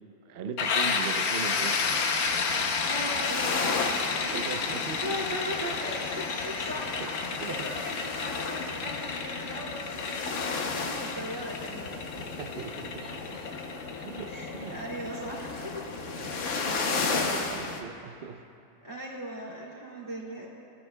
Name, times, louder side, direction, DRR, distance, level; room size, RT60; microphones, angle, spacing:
voice 1, 0.3-1.8 4.2-5.2 7.0-7.7 9.2-9.3 12.1-13.4 14.0-14.8 16.2-18.4, right 6 dB, 55° right, 7 dB, 0.7 m, -39 dB
sound 1, 0.6-16.2, left 5 dB, 75° left, 1.3 m, -32 dB
sound 2, 1.6-17.8, left 4 dB, 55° left, 1.1 m, -35 dB
voice 2, 2.8-4.1 4.3-4.6 5.0-12.0 12.5-12.6 13.0-13.5 14.0-15.9 18.8-20.5, equal, 15° right, -5 dB, 2.7 m, -38 dB
22.5 x 12.0 x 2.2 m, 2.6 s
omnidirectional pair, 1.6 m